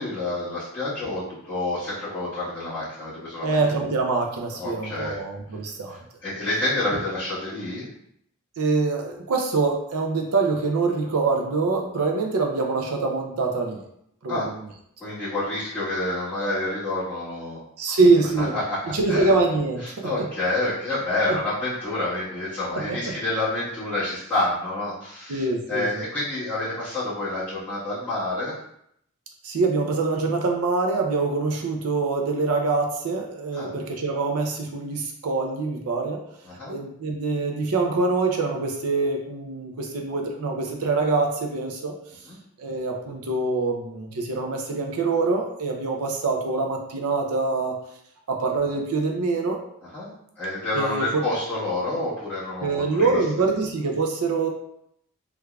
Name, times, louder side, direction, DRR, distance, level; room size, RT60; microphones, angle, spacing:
voice 1, 0.0-3.6 4.6-5.2 6.2-7.8 14.3-14.5 15.0-17.6 17.9-18.0 18.4-18.8 19.1-19.3 19.8-28.5 33.5-33.7 36.4-36.7 42.2-42.4 49.9-50.1 50.4-53.2, left 2 dB, 10° left, -15 dB, 1.4 m, -28 dB
voice 2, 3.4-6.0 8.6-13.8 14.2-14.4 17.8-18.5 18.9-20.2 22.9-23.0 25.3-26.0 29.4-36.2 36.7-41.9 42.6-47.7 48.3-49.6 50.7-51.2 52.6-54.5, right 3 dB, 80° right, 2 dB, 0.5 m, -24 dB
3.5 x 3.2 x 2.3 m, 0.73 s
head